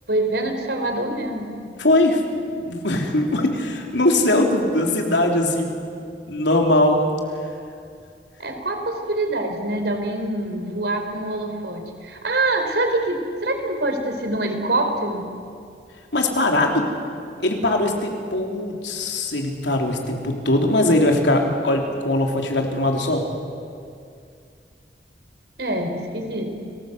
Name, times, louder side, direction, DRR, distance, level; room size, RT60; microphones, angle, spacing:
voice 1, 0.1-1.5 8.4-15.2 25.6-26.4, right 2 dB, 70° right, 4 dB, 4.0 m, -25 dB
voice 2, 1.8-2.2 2.6-5.7 6.3-7.0 16.1-16.9 17.4-23.2, left 1 dB, 90° left, 1 dB, 3.7 m, -20 dB
30.0 x 19.5 x 8.1 m, 2.4 s
head